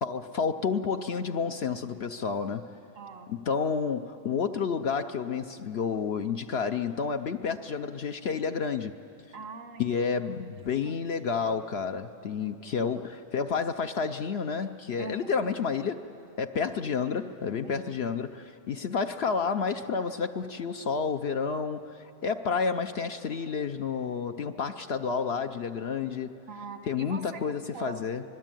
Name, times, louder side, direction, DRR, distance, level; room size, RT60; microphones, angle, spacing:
voice 1, 0.0-2.7 3.3-9.0 9.8-16.1 16.4-26.4 26.9-28.2, left 5 dB, 60° left, 7 dB, 0.9 m, -30 dB
voice 2, 3.0-3.3 9.3-10.0 10.8-11.0 12.4-12.9 15.0-15.4 17.6-17.8 26.5-28.0, right 3 dB, 90° right, 5 dB, 2.1 m, -42 dB
25.0 x 21.5 x 9.0 m, 3.0 s
omnidirectional pair, 1.3 m